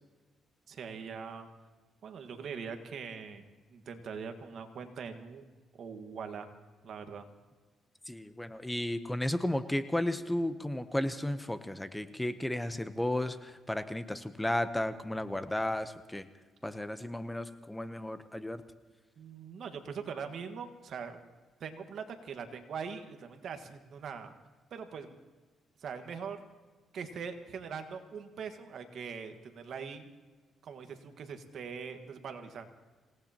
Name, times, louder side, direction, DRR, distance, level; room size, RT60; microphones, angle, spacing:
voice 1, 0.7-1.5 2.0-3.4 3.7-5.4 5.7-6.5 6.8-7.3 19.2-21.2 21.6-24.3 24.7-25.1 25.8-26.4 26.9-30.1 30.6-32.7, right 6 dB, 65° right, 6 dB, 1.6 m, -42 dB
voice 2, 8.1-16.3 16.6-18.6, left 1 dB, 10° left, 11 dB, 0.8 m, -33 dB
27.0 x 18.0 x 3.0 m, 1.3 s
cardioid pair, 90°, 0 cm